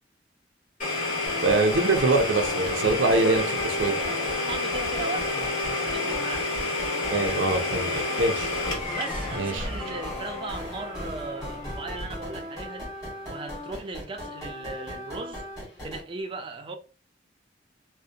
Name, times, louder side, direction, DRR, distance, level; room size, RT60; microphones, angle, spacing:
Domestic sounds home sounds, 0.8-12.4, left 2 dB, 45° left, 1.3 m, -30 dB
sound 1, 1.3-16.0, equal, 20° left, 1.5 m, -38 dB
voice 1, 1.4-3.4 3.8-3.9 7.1-8.5 9.3-9.7, right 2 dB, 85° right, 0.5 m, -23 dB
voice 2, 2.7-4.2 4.5-6.5 7.2-8.2 8.8-12.9 13.3-15.5 15.8-16.8, right 2 dB, 30° right, 0.4 m, -38 dB
2.5 x 2.0 x 2.7 m
head